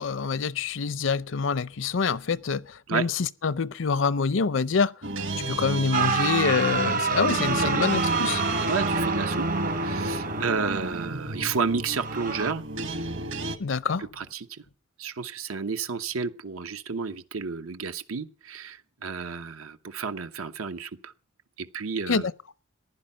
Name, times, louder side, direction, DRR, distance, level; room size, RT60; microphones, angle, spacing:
voice 1, 0.0-4.9 5.5-8.4 13.6-14.0 22.1-22.2, left 5 dB, 65° left, 0.6 m, -26 dB
sound 1, 5.0-13.6, right 1 dB, 60° right, 1.5 m, -31 dB
sound 2, 5.9-11.0 11.9-12.5, right 5 dB, 40° right, 0.8 m, -28 dB
voice 2, 8.6-12.6 14.2-14.5 15.0-21.1 21.6-22.3, right 5 dB, 90° right, 1.0 m, -31 dB
15.0 x 11.0 x 5.5 m
head